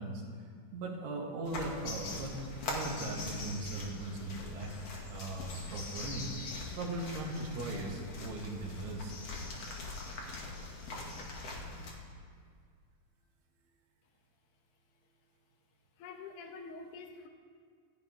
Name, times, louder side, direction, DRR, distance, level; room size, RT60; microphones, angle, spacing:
voice 1, 0.0-2.4 2.6-4.7 5.1-6.3 6.8-9.1, right 2 dB, 65° right, -1 dB, 4.0 m, -39 dB
sound 1, 1.5-11.9, left 2 dB, 45° left, 2.2 m, -42 dB
voice 2, 16.0-17.3, left 4 dB, 75° left, 4 dB, 1.8 m, -46 dB
27.0 x 12.0 x 3.5 m, 2.1 s
omnidirectional pair, 5.3 m